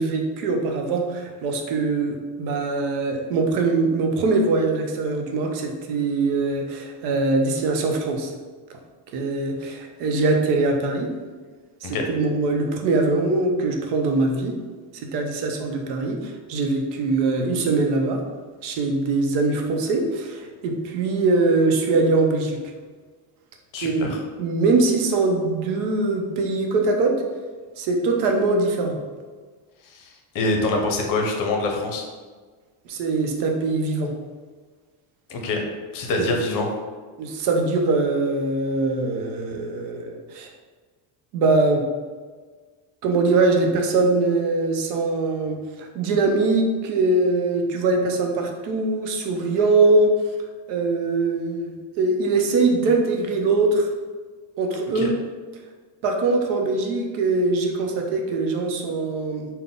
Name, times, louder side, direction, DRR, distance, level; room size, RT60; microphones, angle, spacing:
voice 1, 0.0-8.3 9.1-11.1 11.8-14.5 15.0-18.2 18.6-22.6 23.8-24.1 24.4-27.2 27.8-29.0 32.9-34.1 36.2-36.3 37.2-40.5 41.3-41.8 43.0-50.1 50.7-53.9 54.6-55.1 56.0-59.5, right 3 dB, 75° right, 3 dB, 0.7 m, -22 dB
voice 2, 23.7-24.2 29.8-32.1 35.3-36.8 54.9-55.1, left 2 dB, 50° left, 2 dB, 0.7 m, -25 dB
3.8 x 2.2 x 3.7 m, 1.4 s
cardioid pair, 155°, 41 cm